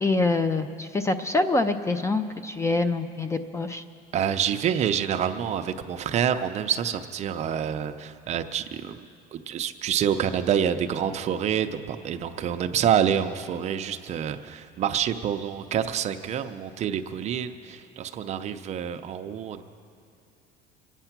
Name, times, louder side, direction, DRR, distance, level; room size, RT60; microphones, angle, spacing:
voice 1, 0.0-3.8, left 2 dB, 15° left, 10 dB, 0.4 m, -25 dB
voice 2, 4.1-9.0 9.3-19.6, right 9 dB, 40° right, 8 dB, 0.6 m, -27 dB
25.0 x 9.1 x 5.9 m, 2.5 s
cardioid pair, 160°, 18 cm